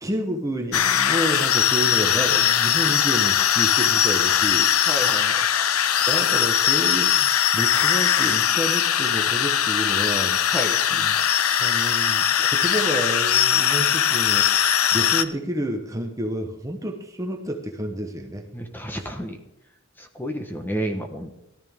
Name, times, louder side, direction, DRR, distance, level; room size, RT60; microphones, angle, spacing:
voice 1, 0.0-4.7 6.1-10.4 10.9-11.1 11.6-14.5 14.9-18.5 18.9-19.1, right 1 dB, 15° right, 3 dB, 1.0 m, -29 dB
sound 1, 0.7-15.2, left 9 dB, 80° left, 0.7 m, -20 dB
voice 2, 4.9-5.4 10.5-10.7 18.5-19.4 20.0-21.3, equal, 10° left, 5 dB, 1.1 m, -30 dB
18.0 x 13.0 x 3.6 m, 0.88 s
head